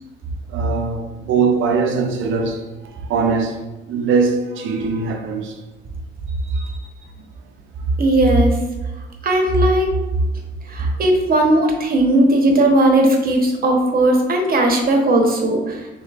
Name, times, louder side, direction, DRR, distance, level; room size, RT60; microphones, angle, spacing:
voice 1, 0.5-2.7 3.1-5.5 6.5-6.7 10.8-10.9, right 5 dB, 80° right, 0.6 m, -21 dB
voice 2, 8.0-8.6 9.2-9.9 10.7-16.0, right 1 dB, 50° right, 1.0 m, -17 dB
6.1 x 2.9 x 2.4 m
cardioid pair, 90°, 20 cm